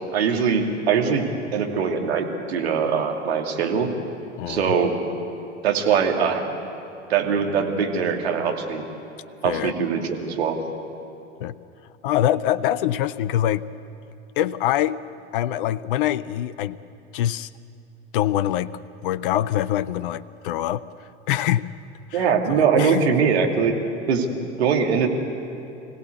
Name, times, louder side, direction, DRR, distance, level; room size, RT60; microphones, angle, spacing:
voice 1, 0.1-3.9 4.5-5.0 5.6-6.4 7.1-8.8 9.4-10.6 22.1-23.7 24.1-25.1, right 6 dB, 60° right, 2 dB, 2.6 m, -22 dB
voice 2, 4.4-4.7 9.4-9.7 11.4-11.5 12.0-13.7 14.4-15.0 15.3-16.8 17.1-17.5 18.1-18.7 19.0-20.8 21.3-21.7 22.1-22.2 22.8-23.0, left 12 dB, 50° left, 17 dB, 0.6 m, -24 dB
25.5 x 16.5 x 8.2 m, 2.8 s
figure-of-eight pair, 85°, 36 cm